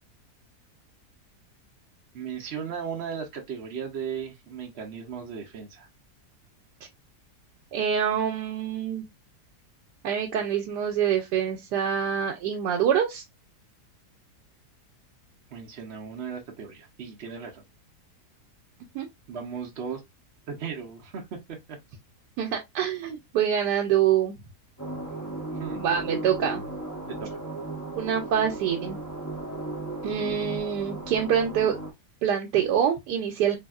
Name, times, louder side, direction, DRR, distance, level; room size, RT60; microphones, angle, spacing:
voice 1, 2.1-5.9 15.5-17.6 19.3-20.0 20.5-21.8 25.1-25.8 27.1-27.4, right 7 dB, 65° right, 0.6 m, -36 dB
voice 2, 7.7-9.0 10.0-13.2 18.9-19.1 22.4-24.4 25.8-26.6 27.9-29.0 30.0-31.8 32.2-33.6, right 8 dB, 85° right, 1.2 m, -25 dB
sound 1, 24.8-31.9, right 2 dB, 30° left, 0.3 m, -35 dB
3.4 x 2.6 x 2.3 m
omnidirectional pair, 1.7 m